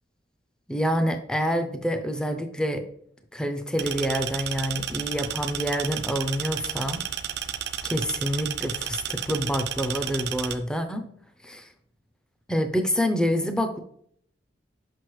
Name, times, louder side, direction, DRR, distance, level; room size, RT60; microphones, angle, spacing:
voice 1, 0.7-2.8 3.3-7.0 7.8-11.0 11.4-11.7 12.5-13.8, equal, 5° left, 6 dB, 0.4 m, -27 dB
sound 1, 3.8-10.5, right 10 dB, 65° right, 0.5 m, -32 dB
6.1 x 5.2 x 3.1 m, 0.66 s
head